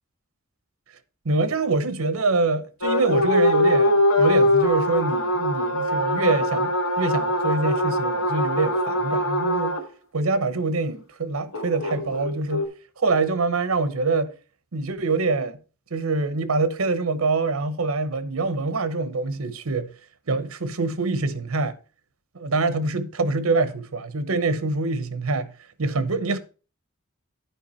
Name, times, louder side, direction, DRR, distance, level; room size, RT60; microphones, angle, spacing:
voice 1, 1.2-9.7 10.1-12.7 13.0-14.3 14.7-15.6 15.9-19.9 20.3-21.7 22.3-25.5 25.8-26.4, right 3 dB, 80° right, 0.8 m, -25 dB
sound 1, 2.8-9.8 11.5-12.6, left 1 dB, 70° left, 1.5 m, -22 dB
10.5 x 4.8 x 4.2 m
head